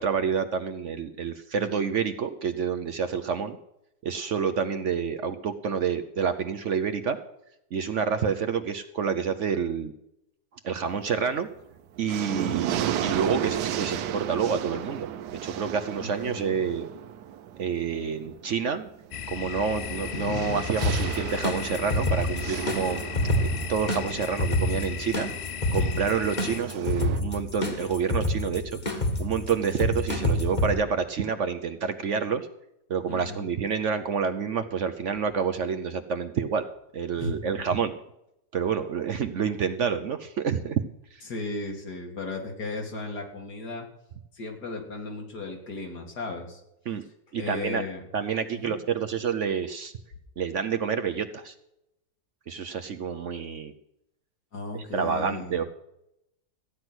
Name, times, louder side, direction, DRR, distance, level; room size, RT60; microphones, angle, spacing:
voice 1, 0.0-3.6 4.0-7.2 7.7-9.9 10.6-11.5 12.0-15.1 15.4-16.9 17.6-18.9 19.3-23.0 23.4-25.3 25.7-32.5 32.9-36.7 36.9-37.9 38.5-40.8 41.1-41.2 46.9-47.0 47.3-47.8 48.1-49.9 50.4-51.5 52.5-53.7 54.7-55.6, right 6 dB, 60° right, 9 dB, 0.9 m, -28 dB
sound 1, 10.8-11.4 11.8-27.2, right 10 dB, 90° right, 1.3 m, -35 dB
voice 2, 16.0-16.6 33.1-33.5 37.2-37.4 41.3-43.9 44.3-46.6 47.3-48.0 48.5-48.8 54.5-55.6, left 3 dB, 75° left, 2 dB, 2.9 m, -35 dB
sound 2, 19.1-26.6, left 9 dB, 55° left, 0.8 m, -36 dB
sound 3, 20.8-30.7, left 1 dB, 30° left, 1.6 m, -28 dB
14.5 x 9.6 x 6.1 m, 0.83 s
omnidirectional pair, 1.7 m